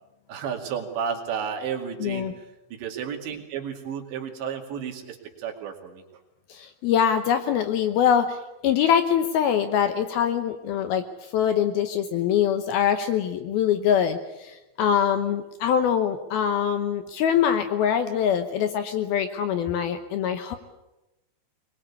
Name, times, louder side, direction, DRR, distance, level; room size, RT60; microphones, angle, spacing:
voice 1, 0.3-2.5 2.7-6.0, right 7 dB, 75° right, 2 dB, 4.5 m, -32 dB
voice 2, 2.0-2.3 6.5-8.4 8.6-11.0 11.3-20.6, left 8 dB, 75° left, 9 dB, 2.5 m, -23 dB
23.0 x 21.5 x 8.5 m, 0.99 s
omnidirectional pair, 5.2 m